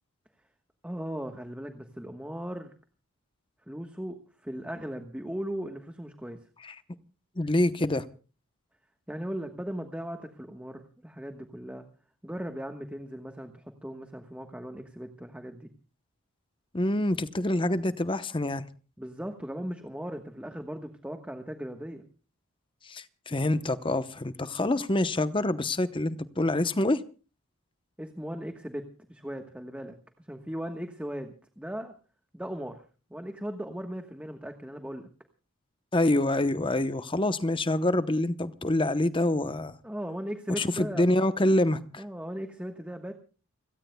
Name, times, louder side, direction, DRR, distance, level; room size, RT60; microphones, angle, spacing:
voice 1, 0.8-2.7 3.7-6.4 9.1-11.8 12.2-15.7 19.0-22.0 28.0-31.9 32.3-32.8 33.1-35.1 39.8-41.1 42.0-43.1, equal, 5° right, 1.2 m, -38 dB
voice 2, 7.4-8.0 16.7-18.6 22.8-27.0 35.9-39.7 40.6-42.0, left 1 dB, 25° left, 0.8 m, -26 dB
30.0 x 17.5 x 2.3 m
head